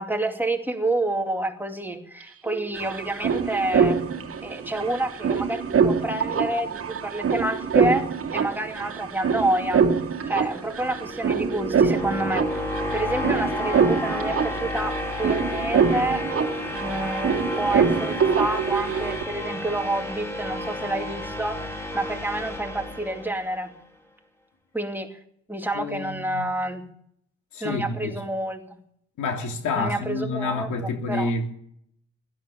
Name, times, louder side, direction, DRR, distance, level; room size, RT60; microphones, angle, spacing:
voice 1, 0.0-4.0 4.4-9.8 10.3-16.2 16.7-23.7 24.7-25.1 25.5-26.9 27.6-28.6 29.7-30.7 31.1-31.3, right 1 dB, 5° right, 2.4 m, -28 dB
sound 1, 2.2-2.3 2.5-19.2, right 6 dB, 50° right, 2.0 m, -25 dB
sound 2, 10.7-23.7, left 1 dB, 10° left, 6.3 m, -31 dB
voice 2, 25.7-26.5 27.5-28.2 29.2-31.4, left 3 dB, 80° left, 3.0 m, -28 dB
16.5 x 12.5 x 7.0 m
cardioid pair, 90°, 30 cm